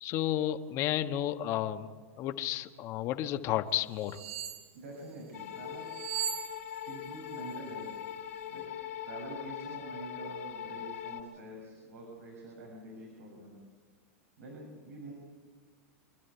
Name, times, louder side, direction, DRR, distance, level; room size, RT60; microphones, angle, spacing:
voice 1, 0.0-1.9 2.2-4.2, left 12 dB, 40° left, 8 dB, 1.4 m, -32 dB
sound 1, 4.0-4.7 5.9-7.1 7.3-7.5, right 10 dB, 60° right, 2.7 m, -38 dB
voice 2, 4.7-5.9 6.9-7.9 8.5-13.6 14.4-15.1, right 2 dB, 90° right, -2 dB, 7.0 m, -46 dB
sound 2, 5.3-11.2, left 10 dB, 80° left, 3.2 m, -41 dB
28.5 x 12.5 x 8.4 m, 1.5 s
hypercardioid pair, 125°, 8 cm